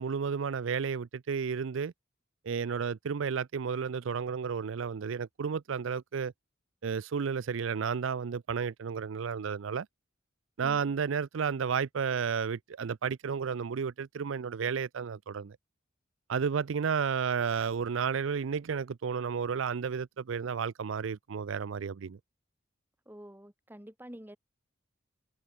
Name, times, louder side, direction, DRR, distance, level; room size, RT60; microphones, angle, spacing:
voice 1, 0.0-1.9 2.5-6.3 6.8-9.9 10.6-15.6 16.3-22.2, right 6 dB, 70° right, 0.5 m, -32 dB
voice 2, 23.0-24.4, equal, 10° right, 3.4 m, -48 dB
head